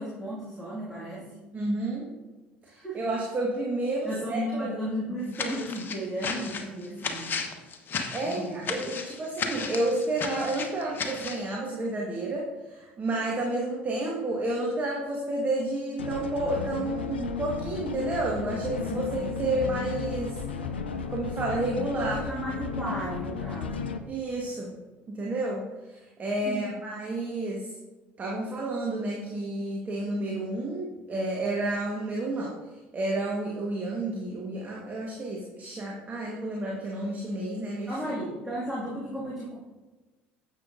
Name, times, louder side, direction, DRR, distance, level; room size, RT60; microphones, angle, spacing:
voice 1, 0.0-1.3 2.6-3.0 4.0-7.3 8.2-8.6 18.9-19.4 21.5-23.9 26.5-26.8 37.9-39.6, equal, 5° right, -7 dB, 2.2 m, -35 dB
voice 2, 1.5-2.1 2.7-4.7 8.1-20.4 21.1-22.3 24.1-24.8 25.1-27.7 28.2-32.5 32.9-37.9, right 2 dB, 30° right, -2 dB, 1.5 m, -30 dB
sound 1, 5.3-11.5, left 5 dB, 35° left, 1.0 m, -34 dB
sound 2, 16.0-24.0, left 5 dB, 80° left, 0.5 m, -34 dB
9.8 x 7.5 x 2.6 m, 1.2 s
figure-of-eight pair, 60°, 6 cm